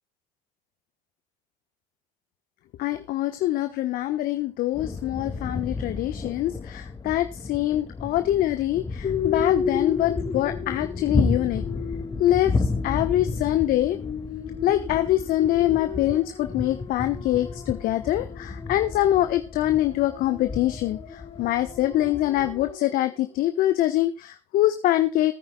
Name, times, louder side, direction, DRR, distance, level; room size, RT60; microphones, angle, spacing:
voice 1, 2.8-11.6 12.2-14.0 14.6-25.3, left 14 dB, 60° left, 9 dB, 1.1 m, -24 dB
sound 1, 4.7-22.7, left 3 dB, 25° left, 2.1 m, -32 dB
sound 2, 9.0-23.2, left 6 dB, 40° left, 3.8 m, -35 dB
20.0 x 9.6 x 2.3 m, 0.30 s
hypercardioid pair, 70°, 17 cm